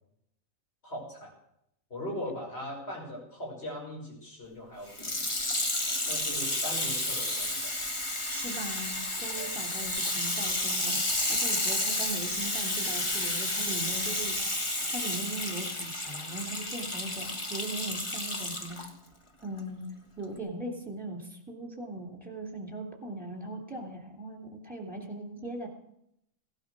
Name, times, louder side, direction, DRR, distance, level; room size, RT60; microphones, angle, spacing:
voice 1, 0.8-1.3 1.9-5.2 6.1-7.9 9.4-9.5, left 1 dB, 50° left, -2 dB, 5.9 m, -40 dB
Water tap faucet / Sink (filling or washing), 4.9-18.9 19.6-19.7, left 1 dB, 20° left, 1.4 m, -31 dB
voice 2, 8.3-11.0 11.3-14.4 14.9-18.8 19.4-19.9 20.2-25.7, right 2 dB, 5° right, 1 dB, 3.2 m, -39 dB
17.5 x 12.0 x 6.2 m, 0.77 s
omnidirectional pair, 1.4 m